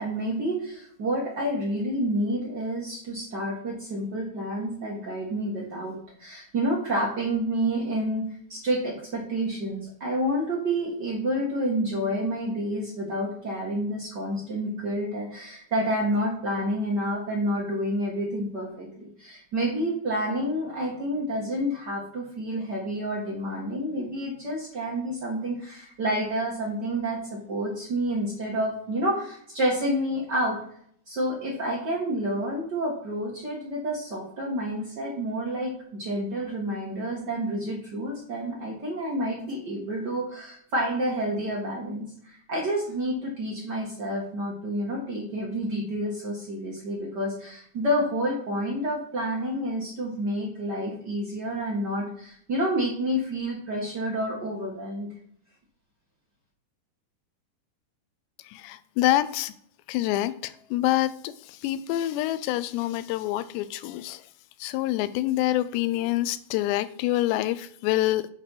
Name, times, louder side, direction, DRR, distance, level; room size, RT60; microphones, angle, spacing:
voice 1, 0.0-8.2 8.5-27.2 27.5-30.6 31.1-35.7 36.0-55.1, equal, 65° right, -3 dB, 1.0 m, -29 dB
voice 2, 58.4-59.5 59.9-64.2 64.6-68.3, left 14 dB, 85° left, 14 dB, 2.7 m, -26 dB
7.8 x 4.5 x 5.8 m, 0.64 s
omnidirectional pair, 5.0 m